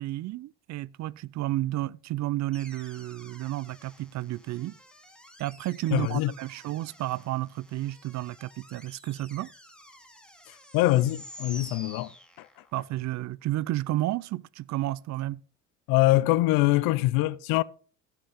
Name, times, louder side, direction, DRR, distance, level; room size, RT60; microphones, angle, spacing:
voice 1, 0.0-4.8 5.4-9.5 12.7-15.4, right 15 dB, 50° right, 0.5 m, -31 dB
sound 1, 2.5-12.8, equal, ahead, 2.2 m, -50 dB
voice 2, 5.9-6.3 10.7-12.1 12.4-12.5 15.9-17.6, left 17 dB, 75° left, 0.7 m, -23 dB
17.0 x 5.8 x 3.5 m
supercardioid pair, 80°, 36 cm